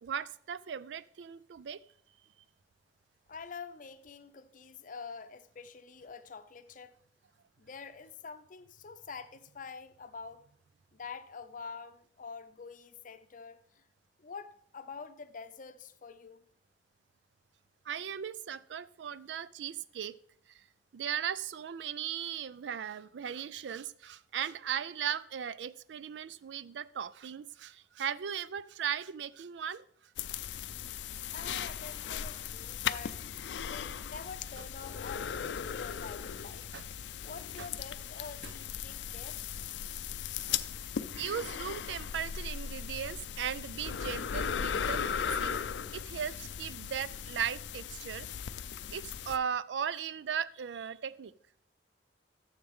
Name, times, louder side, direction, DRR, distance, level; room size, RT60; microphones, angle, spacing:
voice 1, 0.0-1.8 17.9-20.1 20.5-20.6 20.9-29.8 34.6-34.7 36.7-36.9 37.6-37.7 38.4-38.5 40.5-40.6 41.2-45.6 45.9-48.3 48.9-51.3, right 8 dB, 90° right, 0.4 m, -37 dB
voice 2, 3.3-6.9 7.6-10.4 10.9-13.8 14.2-16.5 31.3-33.2 33.6-36.7 37.2-39.4, left 5 dB, 50° left, 0.6 m, -46 dB
sound 1, 30.2-49.4, left 8 dB, 90° left, 0.4 m, -37 dB
12.5 x 7.2 x 3.6 m
head